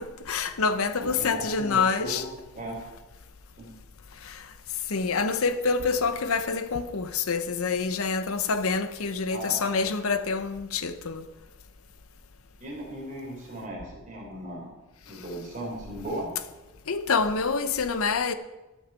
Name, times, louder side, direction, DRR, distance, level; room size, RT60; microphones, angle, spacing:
voice 1, 0.0-2.2 4.3-4.4 4.9-11.2 16.9-18.3, left 4 dB, 75° left, 0.8 m, -27 dB
voice 2, 1.0-2.2 2.5-2.8 3.6-3.7 9.3-9.9 12.6-14.7 15.0-16.3, right 1 dB, 35° right, 3.8 m, -37 dB
13.5 x 7.3 x 5.7 m
head